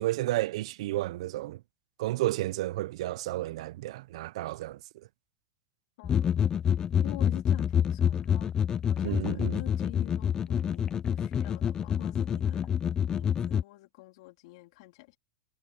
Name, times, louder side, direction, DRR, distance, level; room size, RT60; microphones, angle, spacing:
voice 1, 0.0-1.6 2.0-4.8 9.0-9.6, right 16 dB, 65° right, 0.6 m, -32 dB
voice 2, 6.0-6.7 7.0-8.5 8.9-12.7 13.1-15.2, left 23 dB, 60° left, 3.5 m, -47 dB
sound 1, 6.0-13.6, left 8 dB, 20° left, 0.3 m, -27 dB
supercardioid pair, 145°, 3 cm